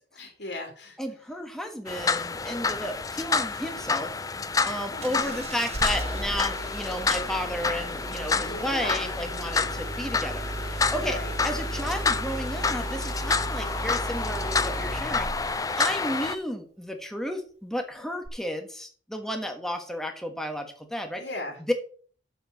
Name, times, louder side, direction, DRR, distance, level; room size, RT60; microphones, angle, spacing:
voice 1, 0.1-1.0 4.9-5.5 8.4-9.1 11.0-11.3 21.2-21.6, left 2 dB, 65° left, 2 dB, 2.8 m, -37 dB
voice 2, 1.0-4.1 4.6-11.2 11.4-15.3 15.8-21.2 21.7-21.8, equal, ahead, 4 dB, 1.5 m, -33 dB
sound 1, 1.9-16.4, left 4 dB, 20° left, 0.5 m, -29 dB
Engine starting, 5.0-15.6 18.3-18.4, right 1 dB, 35° right, 0.9 m, -35 dB
7.2 x 6.7 x 6.7 m, 0.44 s
head